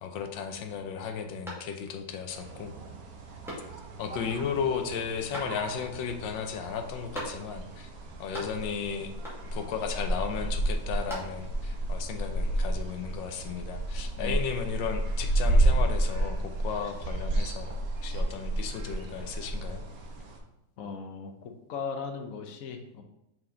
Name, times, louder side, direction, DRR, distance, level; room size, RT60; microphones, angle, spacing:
voice 1, 0.0-2.7 4.0-7.9 8.2-9.1 9.5-17.7 18.0-19.8, left 6 dB, 85° left, 6 dB, 1.5 m, -34 dB
sound 1, 1.4-2.1 2.5-2.6 3.4-4.1 5.3-6.0 7.1-7.7 8.0-8.8 9.2-9.7 10.7-11.7, equal, ahead, 1.8 m, -42 dB
sound 2, 2.3-20.4, right 1 dB, 55° right, 1.2 m, -31 dB
voice 2, 20.8-23.0, left 5 dB, 60° left, 5 dB, 1.0 m, -38 dB
5.9 x 4.5 x 3.8 m, 0.89 s
omnidirectional pair, 2.0 m